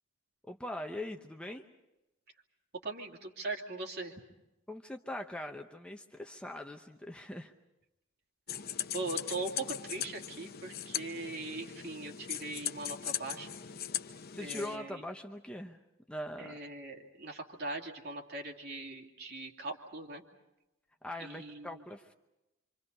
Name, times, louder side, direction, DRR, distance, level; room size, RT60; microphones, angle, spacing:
voice 1, 0.5-1.6 4.7-7.5 14.3-15.8 16.1-16.5 21.0-22.1, left 1 dB, 5° left, 4 dB, 0.8 m, -41 dB
voice 2, 2.8-4.2 8.5-13.5 14.4-15.0 16.4-20.2 21.2-21.8, right 2 dB, 55° right, 2 dB, 2.8 m, -41 dB
sound 1, 8.5-14.8, left 10 dB, 50° left, 0.8 m, -39 dB
27.5 x 26.0 x 5.5 m, 0.95 s
head